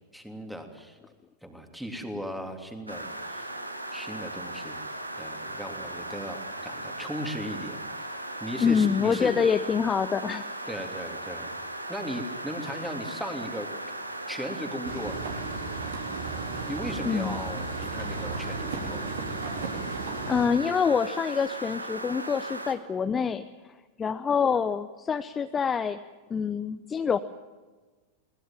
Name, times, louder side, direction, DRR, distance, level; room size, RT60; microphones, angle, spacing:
voice 1, 0.1-1.0 1.4-3.5 3.9-4.8 5.2-7.8 8.4-9.3 10.7-11.5 11.9-13.7 14.3-15.2 16.6-19.1, equal, ahead, 5 dB, 3.2 m, -37 dB
sound 1, 2.9-22.7, right 1 dB, 85° right, 1.9 m, -37 dB
voice 2, 8.6-10.5 17.0-17.4 20.3-23.5 24.0-26.0 26.3-27.2, left 6 dB, 20° left, 11 dB, 0.7 m, -26 dB
sound 2, 14.8-20.5, right 4 dB, 60° right, 4.0 m, -35 dB
22.0 x 19.5 x 7.5 m, 1.3 s
figure-of-eight pair, 90°, 0 cm